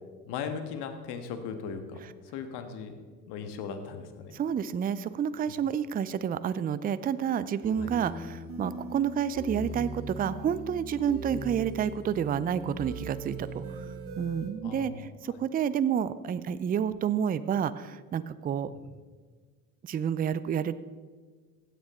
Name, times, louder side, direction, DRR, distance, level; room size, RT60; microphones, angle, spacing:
voice 1, 0.3-2.0 2.3-2.9 3.3-4.3 7.8-7.9 14.6-15.4 18.7-18.8, left 6 dB, 60° left, 7 dB, 1.6 m, -38 dB
voice 2, 4.3-13.9 14.2-18.7 19.8-20.7, right 8 dB, 20° right, 15 dB, 0.4 m, -29 dB
sound 1, 7.6-14.5, right 2 dB, 45° right, 2.5 m, -40 dB
16.0 x 9.2 x 3.7 m, 1.5 s
hypercardioid pair, 60°, 46 cm